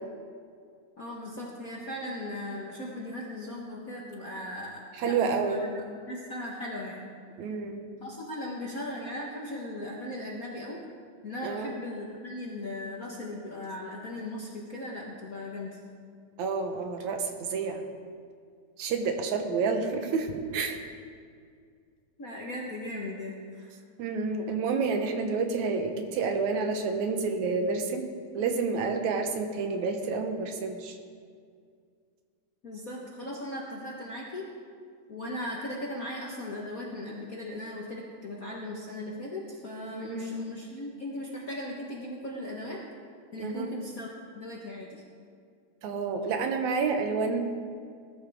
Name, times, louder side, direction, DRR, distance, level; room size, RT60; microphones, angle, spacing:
voice 1, 1.0-5.7 6.1-7.0 8.0-10.8 11.2-15.8 22.2-23.7 32.6-34.5 35.1-42.8 43.3-44.1 44.3-45.0, left 1 dB, 45° left, -3 dB, 1.1 m, -38 dB
voice 2, 5.0-5.6 7.4-7.8 11.4-11.7 16.4-17.8 18.8-20.8 24.0-28.0 28.3-31.0 39.9-40.4 43.4-43.7 45.8-47.4, right 4 dB, 75° right, 5 dB, 2.4 m, -29 dB
19.5 x 11.5 x 3.6 m, 2.2 s
omnidirectional pair, 3.4 m